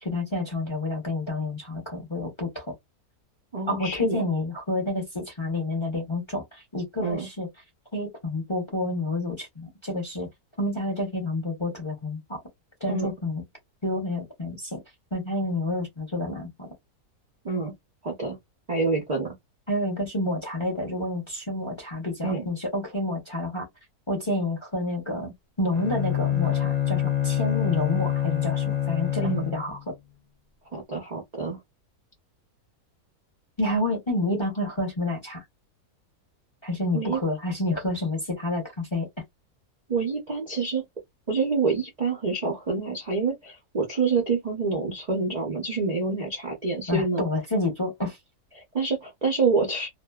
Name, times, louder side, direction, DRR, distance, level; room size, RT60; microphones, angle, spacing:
voice 1, 0.0-2.7 3.7-7.5 7.9-10.3 10.6-12.4 12.8-13.4 13.8-14.8 15.1-16.7 19.7-23.7 24.1-29.9 33.6-35.4 36.6-39.1 46.9-48.2, left 1 dB, 30° left, 0.5 m, -29 dB
voice 2, 3.5-4.2 7.0-7.3 12.9-13.1 17.4-17.7 18.0-18.4 18.7-19.4 22.2-22.5 29.2-29.5 30.7-31.6 36.9-37.2 39.9-40.8 41.3-47.2 48.6-49.9, right 4 dB, 60° right, 0.4 m, -27 dB
Bowed string instrument, 25.7-29.8, left 11 dB, 85° left, 0.3 m, -26 dB
2.5 x 2.2 x 2.2 m
omnidirectional pair, 1.6 m